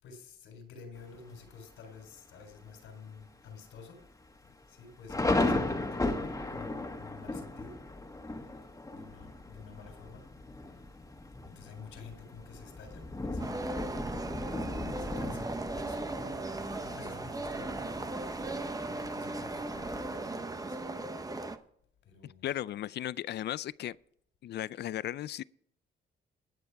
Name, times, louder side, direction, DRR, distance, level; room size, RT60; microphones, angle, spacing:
voice 1, 0.0-4.0 4.7-7.8 8.4-8.6 8.9-10.3 11.4-13.7 15.0-16.1 16.8-18.0 18.9-20.9 22.1-22.5, left 5 dB, 85° left, 3.9 m, -50 dB
Thunder, 1.0-1.5 2.0-2.1 2.4-2.9 3.2-3.3 4.0-20.3, left 2 dB, 15° left, 1.8 m, -37 dB
sound 1, 13.4-21.6, right 2 dB, 20° right, 0.9 m, -37 dB
voice 2, 22.2-24.0 24.4-25.4, left 12 dB, 60° left, 0.4 m, -36 dB
20.0 x 7.0 x 4.7 m
cardioid pair, 90°, 20 cm